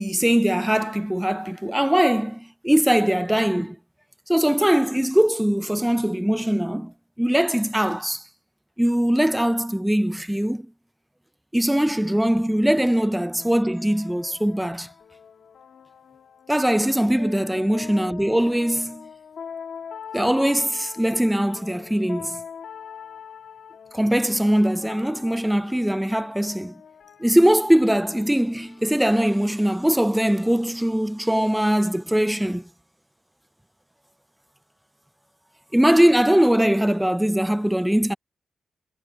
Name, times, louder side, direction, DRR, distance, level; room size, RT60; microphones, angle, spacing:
voice 1, 0.0-3.8 4.3-8.2 8.8-10.7 11.5-14.9 16.5-19.1 20.1-22.4 23.9-26.7 27.2-32.6 35.7-38.1, equal, 5° right, 0.3 m, -21 dB
sound 1, 12.8-30.3, left 7 dB, 55° left, 1.5 m, -43 dB
wide cardioid pair, 175°, 0 cm